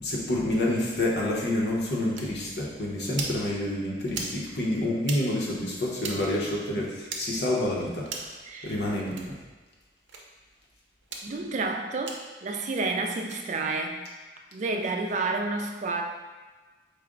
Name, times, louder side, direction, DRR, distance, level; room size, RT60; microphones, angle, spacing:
voice 1, 0.0-8.0 8.6-9.3, left 1 dB, 65° left, -3 dB, 0.9 m, -28 dB
sound 1, 2.2-2.3 3.1-3.4 4.1-4.4 5.0-5.2 6.0-6.2 7.1-7.2 8.0-8.3 9.1-9.3 10.1-10.2 11.0-11.2 12.1-12.2 13.2-13.4, right 4 dB, 85° right, 0.6 m, -36 dB
voice 2, 8.4-8.7 11.2-14.1 14.5-16.0, right 3 dB, 40° right, 3 dB, 0.4 m, -30 dB
4.8 x 2.2 x 3.7 m, 1.3 s
head